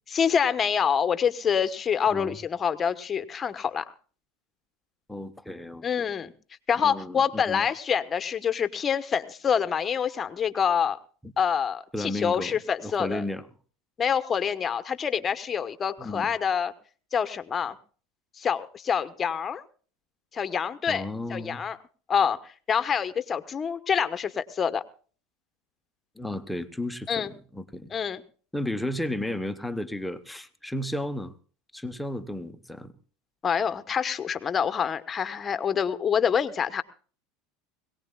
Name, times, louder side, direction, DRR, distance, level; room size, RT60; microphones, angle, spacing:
voice 1, 0.1-3.9 5.8-6.3 6.7-11.0 11.4-13.2 14.0-16.7 17.1-17.8 18.4-19.6 20.3-21.0 21.3-21.8 22.1-22.4 22.7-24.8 27.1-27.3 27.9-28.2 33.4-36.8, left 7 dB, 25° left, 11 dB, 1.1 m, -26 dB
voice 2, 2.1-2.4 5.1-6.1 6.8-7.7 11.2-11.3 11.9-12.5 12.8-13.5 16.0-16.3 20.9-21.6 26.2-27.9 28.5-31.3 31.7-32.9, left 1 dB, 5° left, 8 dB, 1.0 m, -33 dB
22.0 x 18.0 x 2.3 m, 0.41 s
supercardioid pair, 130°, 0 cm